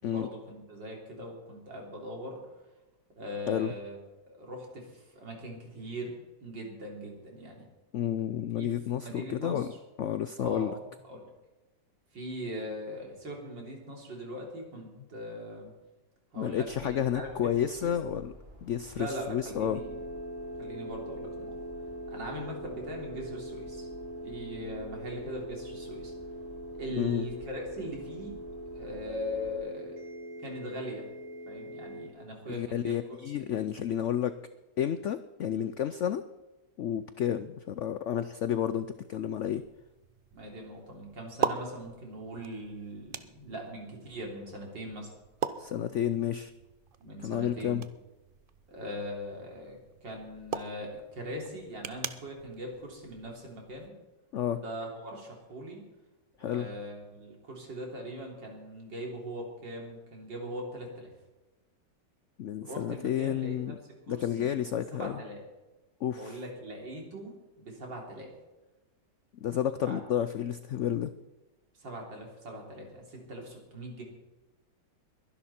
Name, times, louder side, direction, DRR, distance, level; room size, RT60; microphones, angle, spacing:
voice 1, 0.0-2.4 3.2-4.0 4.4-7.6 8.6-8.7 9.0-9.7 10.4-10.8 11.1-11.3 12.1-15.7 16.3-17.5 17.8-17.9 19.0-20.0 20.6-21.7 22.1-23.9 24.2-26.1 26.8-28.3 28.8-30.0 30.4-31.0 31.5-33.0 33.4-33.5 35.5-35.6 40.3-45.1 47.0-47.8 48.7-53.9 54.5-55.8 56.4-61.1 62.6-63.8 64.1-64.6 64.9-65.4 66.1-68.3 69.8-70.0 71.8-74.0, equal, 90° right, -1 dB, 4.1 m, -41 dB
voice 2, 7.9-9.7 10.0-10.7 16.4-18.3 18.6-19.8 26.9-27.3 32.5-34.3 34.8-36.2 36.8-39.6 45.6-46.5 47.2-47.9 54.3-54.6 56.4-56.7 62.4-63.8 64.1-65.2 66.0-66.4 69.4-71.1, left 10 dB, 90° left, 12 dB, 0.6 m, -31 dB
sound 1, 16.6-29.6, left 4 dB, 30° right, 5.6 m, -46 dB
sound 2, 19.5-32.1, right 1 dB, 50° right, 1.9 m, -42 dB
sound 3, 38.7-53.9, right 7 dB, 70° right, 0.5 m, -41 dB
22.5 x 11.0 x 4.3 m, 1.1 s
omnidirectional pair, 1.9 m